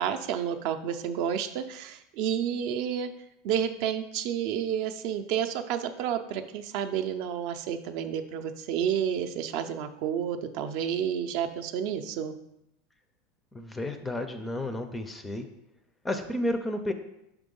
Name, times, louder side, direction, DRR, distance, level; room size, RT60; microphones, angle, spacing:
voice 1, 0.0-3.1 3.4-12.4, right 9 dB, 50° right, 8 dB, 0.5 m, -30 dB
voice 2, 13.5-15.5 16.0-16.9, left 1 dB, 10° left, 7 dB, 0.4 m, -31 dB
5.9 x 3.5 x 5.3 m, 0.85 s
supercardioid pair, 150°, 0 cm